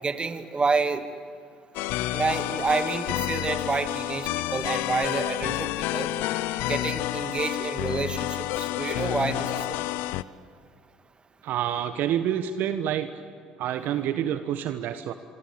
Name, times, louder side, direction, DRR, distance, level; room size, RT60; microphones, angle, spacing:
voice 1, 0.0-1.0 2.1-6.1 6.6-9.8, right 4 dB, 25° right, 9 dB, 2.5 m, -28 dB
sound 1, 1.7-10.2, left 15 dB, 65° left, 0.7 m, -29 dB
voice 2, 11.4-13.1 13.6-15.1, right 10 dB, 60° right, 10 dB, 1.2 m, -27 dB
25.5 x 24.5 x 8.8 m, 2.2 s
hypercardioid pair, 60°, 4 cm